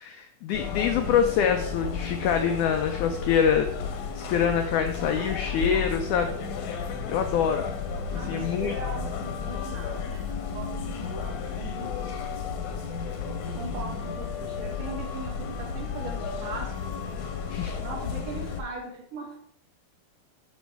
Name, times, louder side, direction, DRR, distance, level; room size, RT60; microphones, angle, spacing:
voice 1, 0.0-3.7 4.1-6.4 7.1-7.7 8.1-8.7 17.5-17.8, left 7 dB, 85° left, 6 dB, 1.7 m, -25 dB
sound 1, 0.5-18.6, left 6 dB, 70° left, 2.0 m, -33 dB
voice 2, 8.1-12.5 13.4-16.9 17.8-19.4, right 3 dB, 60° right, -3 dB, 3.0 m, -39 dB
10.5 x 6.2 x 3.4 m, 0.70 s
omnidirectional pair, 4.2 m